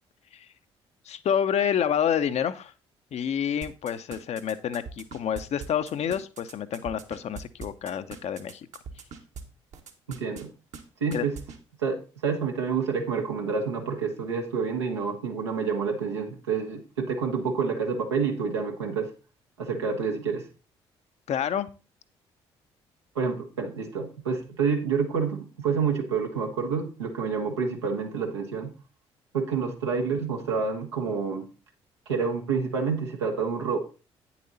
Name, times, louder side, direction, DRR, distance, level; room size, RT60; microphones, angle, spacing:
voice 1, 1.0-2.7 3.1-8.7 11.1-11.3 21.3-21.7, left 8 dB, 50° left, 11 dB, 0.8 m, -28 dB
sound 1, 3.6-9.4 9.7-10.4 10.7-10.8 11.1-11.6, right 6 dB, 55° right, 1.5 m, -41 dB
voice 2, 10.1-10.5 11.0-11.3 11.8-19.1 19.6-20.5 23.1-28.7 29.3-31.5 32.1-33.8, right 5 dB, 85° right, 1 dB, 1.5 m, -28 dB
9.3 x 7.2 x 4.1 m, 0.33 s
figure-of-eight pair, 50°, 14 cm